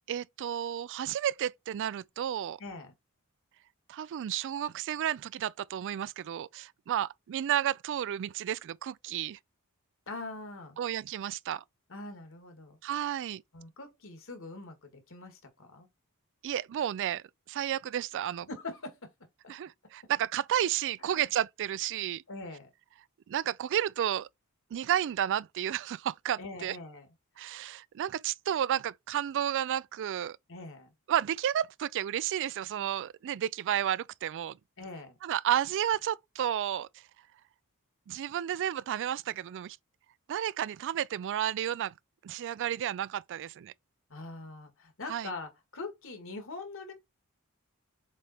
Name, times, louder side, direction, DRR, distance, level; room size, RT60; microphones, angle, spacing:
voice 1, 0.1-2.6 3.9-9.4 10.8-11.6 12.8-13.4 16.4-18.5 19.5-22.2 23.3-24.3 24.7-26.8 27.4-30.4 31.1-34.6 35.2-36.9 38.1-39.8 40.3-41.9 42.2-43.7 45.1-45.3, right 10 dB, 55° right, 0.3 m, -32 dB
voice 2, 2.6-2.9 10.1-10.8 11.9-12.8 13.5-15.9 18.5-19.1 21.0-21.2 22.3-22.7 26.4-27.1 27.4-27.6 30.5-30.9 34.8-35.2 44.1-46.9, left 3 dB, 60° left, 1.9 m, -43 dB
7.3 x 3.4 x 4.2 m
head